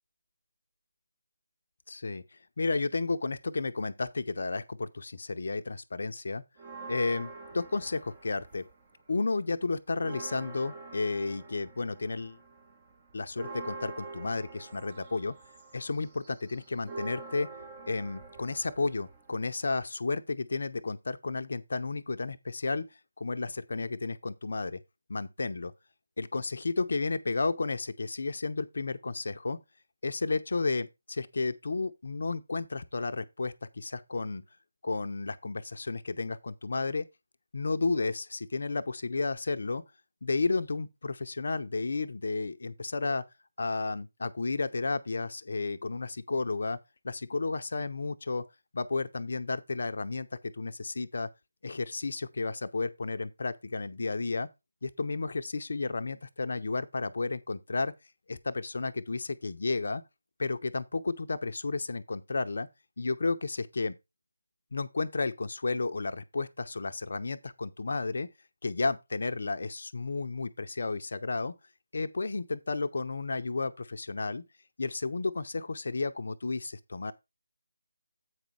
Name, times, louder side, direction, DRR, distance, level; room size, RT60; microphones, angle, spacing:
voice 1, 1.9-2.2 2.6-6.4 6.9-8.7 9.1-12.4 13.1-15.3 15.7-17.5 17.9-24.8 25.1-25.7 26.2-29.6 30.0-34.4 34.8-37.1 37.5-39.8 40.2-43.2 43.6-46.8 47.0-48.4 48.7-51.3 51.6-54.5 54.8-57.9 58.3-60.0 60.4-62.7 63.0-64.0 64.7-68.3 68.6-71.5 71.9-74.4 74.8-77.1, left 3 dB, 55° left, 0.8 m, -32 dB
sound 1, 6.6-8.9 9.3-19.8, right 3 dB, 25° right, 1.5 m, -46 dB
8.2 x 5.3 x 4.6 m
figure-of-eight pair, 160°, 0 cm